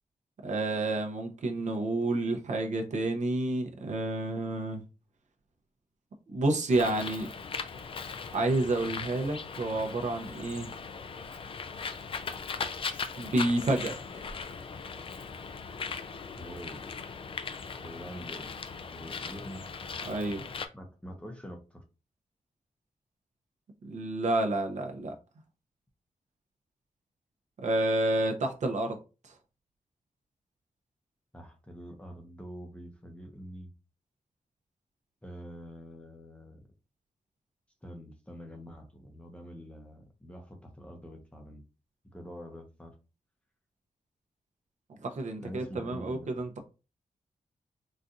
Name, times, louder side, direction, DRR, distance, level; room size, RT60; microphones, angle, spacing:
voice 1, 0.4-4.8 6.3-7.3 8.3-10.7 13.2-13.9 20.0-20.5 23.8-25.1 27.6-29.0 45.0-46.6, right 2 dB, 55° right, 4 dB, 0.7 m, -29 dB
Bird, 6.7-20.7, left 5 dB, 40° left, 0.4 m, -39 dB
voice 2, 16.4-16.8 17.7-18.6 18.9-19.6 20.7-21.8 31.3-33.7 35.2-36.6 37.8-41.6 42.1-42.9 45.4-46.4, equal, 10° left, 2 dB, 0.7 m, -45 dB
4.0 x 2.4 x 2.5 m, 0.30 s
wide cardioid pair, 130°, 14 cm